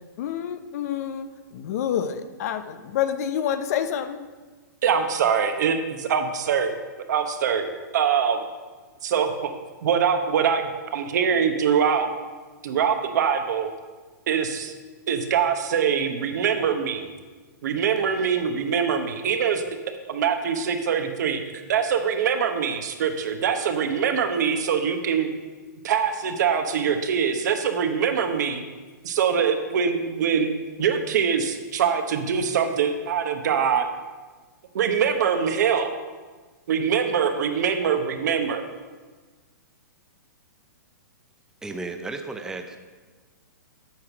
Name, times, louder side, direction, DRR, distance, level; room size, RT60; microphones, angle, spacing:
voice 1, 0.2-1.3 1.5-4.2, left 9 dB, 55° left, 10 dB, 0.7 m, -28 dB
voice 2, 4.8-6.7 7.1-8.5 9.0-9.5 9.8-12.1 12.6-13.7 14.3-14.7 15.1-17.1 17.6-19.6 20.1-21.4 21.7-25.3 25.8-28.6 29.0-30.5 30.8-33.9 34.7-35.9 36.7-38.6, right 7 dB, 65° right, 6 dB, 1.1 m, -23 dB
voice 3, 41.6-42.8, right 3 dB, 5° right, 5 dB, 0.6 m, -34 dB
8.6 x 5.8 x 6.0 m, 1.4 s
hypercardioid pair, 140°, 10 cm